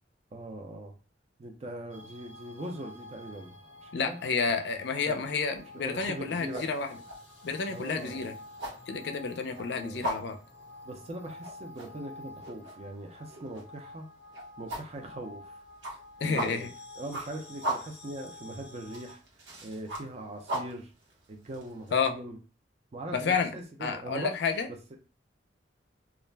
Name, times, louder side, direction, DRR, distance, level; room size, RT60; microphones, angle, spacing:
voice 1, 0.3-0.9 1.4-4.2 5.1-5.2 5.7-6.7 7.7-8.3 9.8-10.1 10.8-14.1 14.6-15.6 16.2-16.7 17.0-19.2 19.6-20.9 21.3-22.4 22.9-24.3 24.7-25.0, right 1 dB, 35° right, 3 dB, 0.4 m, -41 dB
sound 1, 1.9-19.1, left 2 dB, 30° left, 0.8 m, -50 dB
voice 2, 3.9-7.0 7.4-8.3 8.9-10.4 16.2-16.7 21.9-22.1 23.1-23.5 23.8-24.7, left 5 dB, 65° left, 6 dB, 0.4 m, -30 dB
sound 2, 4.3-4.7 5.0-21.9, right 1 dB, 75° right, 0.9 m, -39 dB
2.4 x 2.1 x 3.2 m, 0.34 s
head